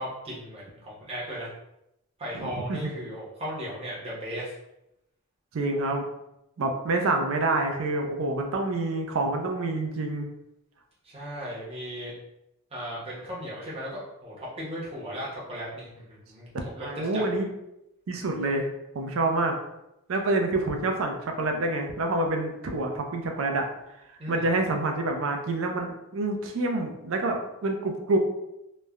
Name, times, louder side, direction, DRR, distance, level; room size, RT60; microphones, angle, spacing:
voice 1, 0.0-1.5 2.2-4.5 11.0-12.1 12.7-16.5 16.8-17.2 24.2-24.5, equal, 25° right, -7 dB, 0.7 m, -36 dB
voice 2, 2.4-2.8 5.5-6.1 6.6-10.3 16.8-17.5 18.1-18.7 18.9-19.5 20.1-23.6 24.3-28.2, right 2 dB, 65° right, 3 dB, 0.4 m, -27 dB
3.0 x 2.1 x 2.3 m, 0.86 s
head